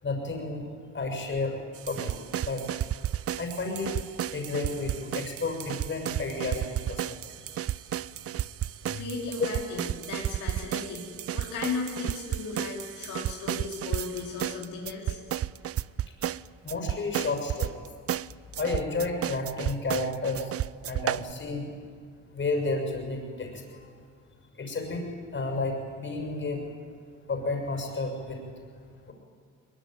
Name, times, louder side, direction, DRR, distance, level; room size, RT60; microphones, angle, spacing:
voice 1, 0.0-0.6 0.9-1.6 1.9-2.6 3.4-4.0 4.3-7.0 9.4-9.5 16.6-17.7 18.6-20.5 20.9-21.7 22.3-23.9 24.6-26.6 27.3-28.4 29.1-29.2, left 3 dB, 40° left, 2 dB, 6.5 m, -31 dB
sound 1, 1.8-21.3, right 11 dB, 50° right, 0.6 m, -33 dB
voice 2, 9.0-15.2, left 4 dB, 80° left, -2 dB, 4.0 m, -36 dB
22.5 x 21.5 x 9.2 m, 2.1 s
cardioid pair, 90°, 30 cm